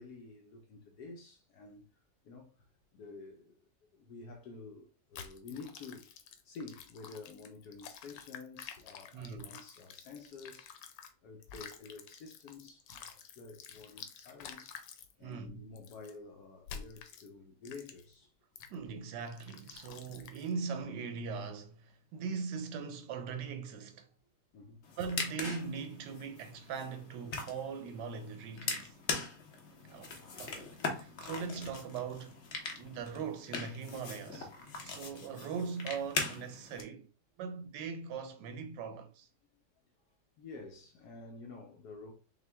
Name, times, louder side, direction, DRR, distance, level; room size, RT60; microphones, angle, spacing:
voice 1, 0.0-1.8 2.2-3.6 3.9-6.1 6.4-10.8 11.2-14.8 15.2-18.3 24.5-25.0 39.5-39.6 40.4-42.1, left 4 dB, 70° left, 1.2 m, -50 dB
sound 1, 5.1-11.1 11.4-15.1 15.8-16.1 16.7-17.3 17.6-18.1 18.6-18.7 19.3-20.5, left 7 dB, 85° left, 1.3 m, -50 dB
voice 2, 9.1-9.6 15.2-15.6 18.7-24.1 25.0-28.9 29.8-30.1 30.4-30.7 30.9-32.4 32.7-34.5 34.8-37.1 37.4-39.3, right 5 dB, 80° right, 1.3 m, -40 dB
sound 2, 24.8-36.8, left 4 dB, 50° left, 0.9 m, -41 dB
5.8 x 2.2 x 3.4 m
omnidirectional pair, 1.9 m